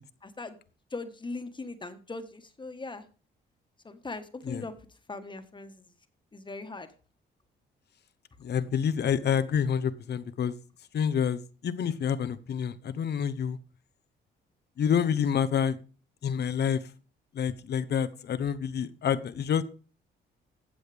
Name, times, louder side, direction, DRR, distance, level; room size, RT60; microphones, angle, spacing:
voice 1, 0.2-0.6 0.9-3.0 3.8-4.7 5.1-5.9 6.3-6.9, left 3 dB, 25° left, 8 dB, 1.6 m, -39 dB
voice 2, 8.4-10.5 10.9-13.6 14.8-15.8 16.2-16.9 17.3-19.6, left 8 dB, 55° left, 14 dB, 0.9 m, -28 dB
15.0 x 7.7 x 3.5 m, 0.37 s
cardioid pair, 90°, 20 cm